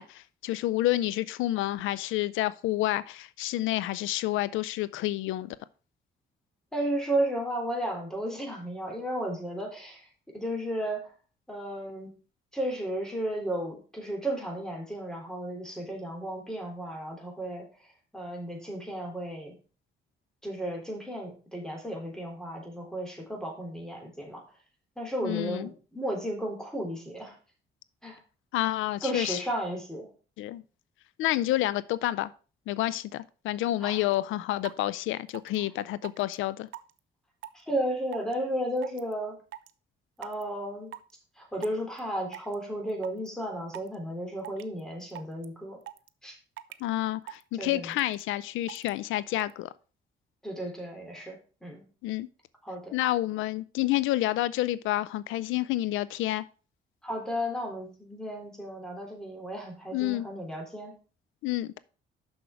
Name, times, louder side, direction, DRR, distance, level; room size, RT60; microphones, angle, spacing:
voice 1, 0.0-5.6 25.2-25.7 28.5-29.4 30.4-30.6 31.2-32.3 32.7-36.7 46.8-49.7 52.0-52.3 52.9-56.4 59.9-60.3 61.4-61.8, left 15 dB, 90° left, 0.5 m, -29 dB
voice 2, 6.7-10.1 10.3-11.1 11.5-12.1 12.5-17.7 18.1-19.5 20.4-24.4 25.0-27.4 28.0-28.2 29.0-30.1 33.8-34.0 37.7-39.4 40.2-40.9 41.4-45.8 46.2-46.4 47.5-47.9 50.4-51.9 52.6-52.9 57.0-60.9, right 1 dB, 5° left, 3.4 m, -34 dB
sound 1, 34.1-34.2 34.6-34.8 35.3-35.6 36.0-36.3 36.7-37.0 37.4-37.6 38.1-38.3 38.8-39.1 39.5-39.7 40.2-40.4 40.9-41.1 41.6-42.0 42.3-42.5 42.9-43.3 43.7-43.9 44.4-44.8 45.1-45.4 45.8-46.1 46.6-46.8 47.3-47.4 47.7-48.2 48.7-48.9 49.4-49.5, right 13 dB, 80° right, 0.6 m, -42 dB
6.4 x 6.2 x 4.5 m
cardioid pair, 90°, 20 cm